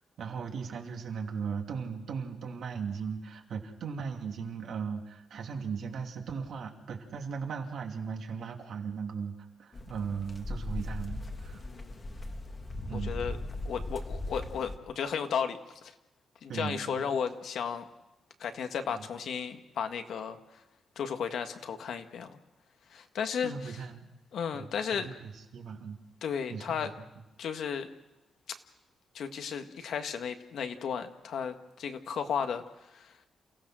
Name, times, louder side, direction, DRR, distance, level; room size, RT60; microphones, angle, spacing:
voice 1, 0.2-11.7 12.9-13.2 16.5-17.2 18.9-19.1 23.4-24.1 24.5-26.0 26.5-27.1, right 6 dB, 65° right, 3 dB, 2.6 m, -38 dB
sound 1, 9.7-14.8, left 2 dB, 25° left, 1.5 m, -38 dB
voice 2, 11.5-11.9 12.9-13.4 13.6-15.9 16.4-17.8 18.4-20.4 20.9-22.4 22.9-23.5 24.3-25.1 26.2-26.9 27.4-27.9 29.1-32.6 32.9-33.1, left 7 dB, 70° left, 7 dB, 1.5 m, -34 dB
28.5 x 16.5 x 6.2 m, 0.99 s
wide cardioid pair, 165°, 0 cm